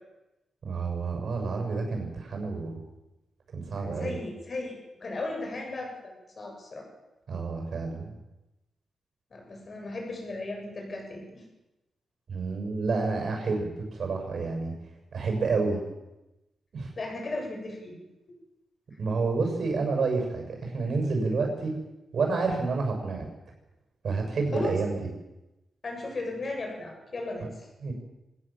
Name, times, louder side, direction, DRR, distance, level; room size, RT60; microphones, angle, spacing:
voice 1, 0.6-2.8 3.5-4.2 7.3-8.1 12.3-14.7 15.1-15.8 16.7-16.9 19.0-21.7 22.1-23.3 24.0-25.0 27.8-27.9, right 4 dB, 50° right, 3 dB, 7.2 m, -29 dB
voice 2, 3.8-6.8 9.3-11.4 17.0-18.0 24.5-24.7 25.8-27.7, left 2 dB, 35° left, 1 dB, 7.8 m, -36 dB
24.5 x 19.0 x 7.7 m, 0.97 s
wide cardioid pair, 170°, 0 cm